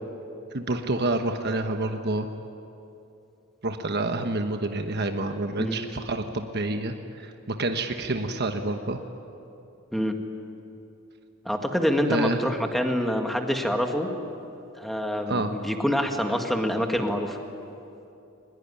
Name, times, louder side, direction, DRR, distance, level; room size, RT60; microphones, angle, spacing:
voice 1, 0.5-2.3 3.6-9.0 12.1-12.4 15.3-15.5, right 2 dB, 55° right, 6 dB, 1.2 m, -28 dB
voice 2, 11.5-14.1 14.7-17.4, equal, ahead, 3 dB, 1.9 m, -26 dB
23.5 x 21.0 x 10.0 m, 2.8 s
head